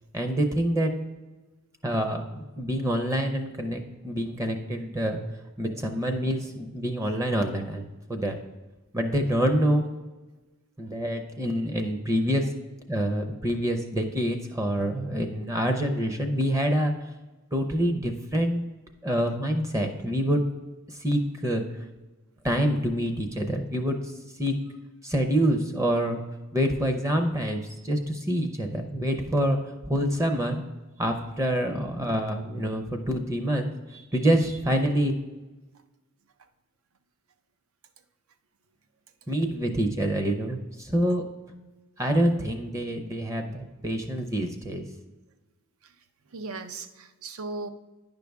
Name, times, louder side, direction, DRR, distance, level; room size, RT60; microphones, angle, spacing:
voice 1, 0.1-0.9 1.8-5.2 5.6-8.4 8.9-9.8 10.8-12.5 12.9-16.9 17.5-18.7 19.0-20.4 20.9-21.6 22.4-24.1 24.4-24.5 25.0-26.2 26.5-29.6 29.8-30.6 31.0-35.1 39.3-41.2 42.0-44.8, equal, 15° right, 5 dB, 0.6 m, -26 dB
voice 2, 46.3-47.7, right 3 dB, 75° right, 9 dB, 0.6 m, -37 dB
10.0 x 5.3 x 3.4 m, 1.2 s
head